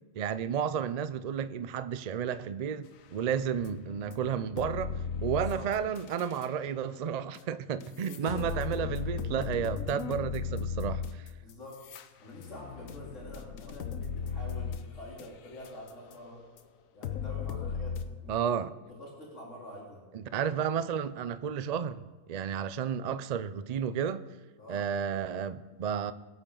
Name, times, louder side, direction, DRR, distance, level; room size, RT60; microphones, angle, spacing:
voice 1, 0.2-11.3 18.3-18.7 20.1-22.0 22.3-24.2 24.7-26.1, right 8 dB, 80° right, 0.3 m, -32 dB
sound 1, 3.1-6.5 7.3-7.4 7.8-16.1 16.6-16.7 17.0-18.0, left 6 dB, 85° left, 1.2 m, -36 dB
voice 2, 5.3-5.7 8.0-8.6 11.4-11.8 12.2-16.4 16.9-18.6 18.9-20.0 20.6-20.7 24.6-24.9, left 1 dB, 65° left, 3.5 m, -46 dB
22.0 x 9.0 x 3.9 m
omnidirectional pair, 1.4 m